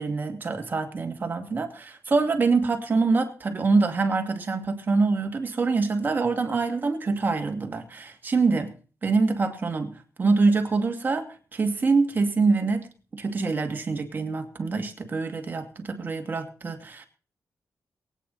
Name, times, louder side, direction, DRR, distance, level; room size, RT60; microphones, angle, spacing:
voice 1, 0.0-8.7 9.0-11.3 11.5-17.0, right 4 dB, 30° right, 2.5 m, -25 dB
23.0 x 9.4 x 4.2 m
wide cardioid pair, 175°, 6 cm